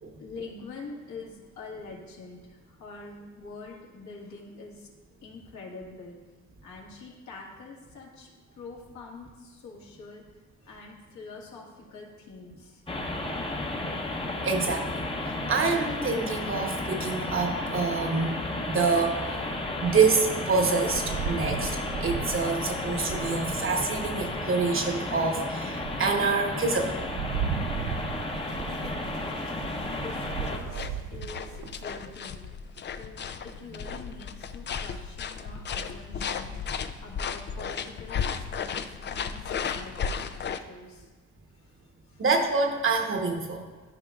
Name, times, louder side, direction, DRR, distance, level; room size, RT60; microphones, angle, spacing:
voice 1, 0.2-4.9 5.2-6.2 6.6-8.3 8.6-10.2 10.6-13.1 27.5-27.8 28.7-29.7 30.0-41.1 41.5-42.2, left 4 dB, 70° left, -3 dB, 1.9 m, -45 dB
sound 1, 12.9-30.6, left 2 dB, 20° left, 0.9 m, -33 dB
voice 2, 14.4-19.4 19.8-27.0 42.2-43.6, right 4 dB, 45° right, 3 dB, 1.1 m, -27 dB
Rain, 20.9-24.4 24.9-25.0 25.5-32.1, right 7 dB, 85° right, 0.5 m, -36 dB
sound 2, 30.4-40.6, left 6 dB, 40° left, 0.4 m, -34 dB
13.0 x 5.0 x 2.4 m, 1.4 s
cardioid pair, 90°, 30 cm